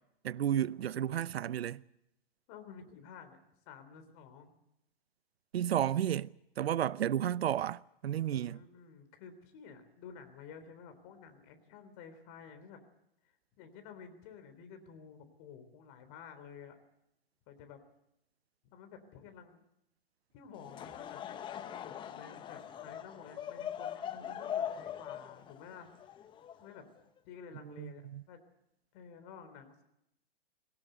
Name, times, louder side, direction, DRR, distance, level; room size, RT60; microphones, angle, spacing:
voice 1, 0.2-1.8 5.5-6.3 6.6-8.6 27.8-28.2, right 10 dB, 90° right, 0.7 m, -32 dB
voice 2, 2.5-3.4 3.7-4.6 6.9-7.0 8.2-12.8 13.6-16.8 17.5-17.8 18.7-19.6 20.3-25.9 26.6-26.8 27.2-28.4 28.9-29.8, left 6 dB, 35° left, 3.6 m, -52 dB
Laughter / Crowd, 20.6-27.0, left 9 dB, 15° left, 0.8 m, -41 dB
21.0 x 18.0 x 8.0 m
hypercardioid pair, 145°, 30 cm